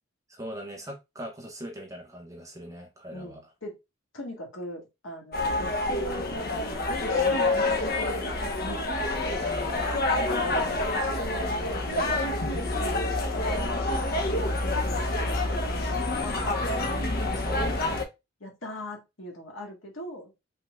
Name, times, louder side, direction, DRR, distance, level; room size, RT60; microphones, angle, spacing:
voice 1, 0.3-3.4 9.4-9.7 17.3-17.7, equal, 15° right, 1.1 m, -41 dB
voice 2, 3.1-3.8 4.1-8.3 8.6-8.9 10.2-12.3 12.6-17.0 18.4-20.4, equal, 70° left, 1.9 m, -40 dB
sound 1, 5.3-18.1, left 2 dB, 50° left, 0.9 m, -27 dB
5.7 x 3.7 x 2.3 m
head